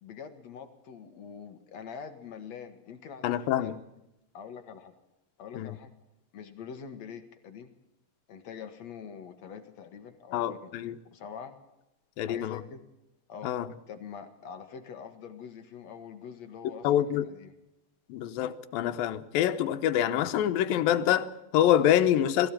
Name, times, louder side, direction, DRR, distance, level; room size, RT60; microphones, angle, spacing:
voice 1, 0.0-3.7 4.3-4.9 5.4-5.9 6.3-7.7 8.3-10.7 11.1-11.6 12.2-12.8 13.3-13.5 13.9-17.5, left 7 dB, 60° left, 2.5 m, -44 dB
voice 2, 3.2-3.8 5.5-5.8 10.3-11.0 12.2-12.6 13.4-13.7 16.8-17.3 18.1-22.5, left 11 dB, 90° left, 2.7 m, -26 dB
21.0 x 15.5 x 8.8 m
omnidirectional pair, 4.0 m